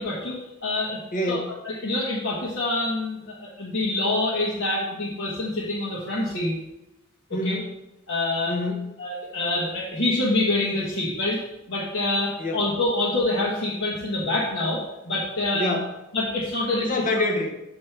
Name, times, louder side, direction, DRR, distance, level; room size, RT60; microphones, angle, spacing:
voice 1, 0.0-1.0 1.3-1.4 1.6-6.5 7.4-7.6 8.1-8.5 9.0-11.4 11.7-14.8 15.0-15.7 16.1-16.9, left 2 dB, 60° left, -5 dB, 1.2 m, -26 dB
voice 2, 1.1-1.5 7.3-7.8 8.5-8.9 12.4-12.6 15.5-15.9 16.8-17.5, left 1 dB, 40° left, 4 dB, 0.9 m, -26 dB
6.3 x 5.9 x 3.3 m, 0.92 s
head